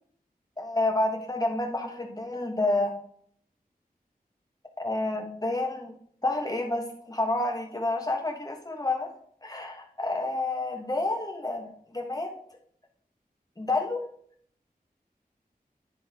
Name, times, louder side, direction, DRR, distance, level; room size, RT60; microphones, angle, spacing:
voice 1, 0.6-2.9 4.8-5.9 6.2-9.1 9.4-12.3 13.6-14.0, left 2 dB, 25° left, 1 dB, 1.4 m, -29 dB
9.8 x 4.0 x 3.7 m, 0.63 s
wide cardioid pair, 50°, 16 cm